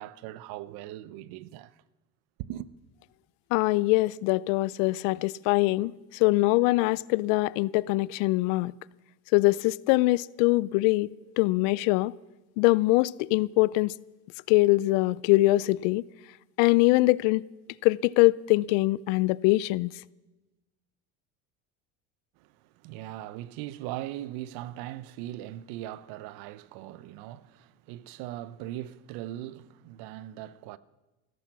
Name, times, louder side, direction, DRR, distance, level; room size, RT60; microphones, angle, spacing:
voice 1, 0.0-1.8 2.4-2.7 22.4-30.8, right 14 dB, 70° right, 0.8 m, -40 dB
voice 2, 3.5-8.7 9.3-12.1 12.6-13.9 14.5-16.1 16.6-17.4 17.8-19.9, left 20 dB, 75° left, 0.6 m, -23 dB
15.0 x 14.0 x 6.2 m
supercardioid pair, 100°, 38 cm